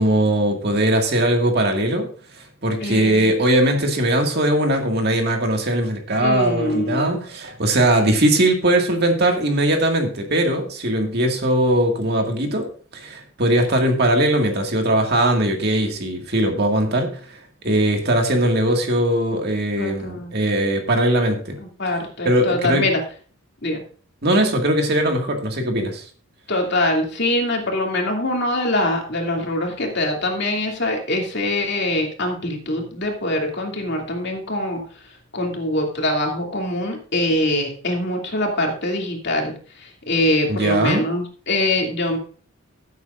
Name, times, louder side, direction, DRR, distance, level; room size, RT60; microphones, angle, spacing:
voice 1, 0.0-2.1 2.6-17.4 17.6-21.6 22.2-22.9 24.2-26.0 40.5-41.1, right 1 dB, 45° right, 3 dB, 2.0 m, -20 dB
voice 2, 2.8-3.3 6.2-7.2 19.8-20.3 21.6-23.0 23.6-23.8 26.5-34.8 35.3-42.2, left 1 dB, 50° left, 1 dB, 2.6 m, -23 dB
16.0 x 8.2 x 2.5 m, 0.42 s
head